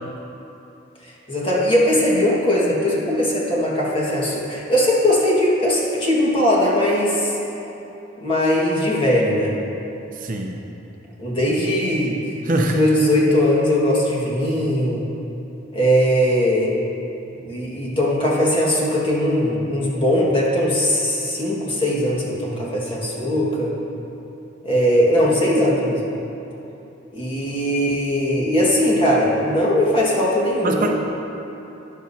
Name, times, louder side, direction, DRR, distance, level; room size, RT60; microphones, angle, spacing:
voice 1, 1.3-7.4 8.2-9.5 11.2-12.2 12.6-15.0 15.7-16.7 17.4-23.7 24.6-26.0 27.1-30.9, equal, 25° left, -5 dB, 1.7 m, -19 dB
voice 2, 10.1-10.6 12.4-12.8 30.6-30.9, right 2 dB, 45° right, 1 dB, 0.7 m, -23 dB
12.5 x 10.0 x 2.8 m, 2.9 s
head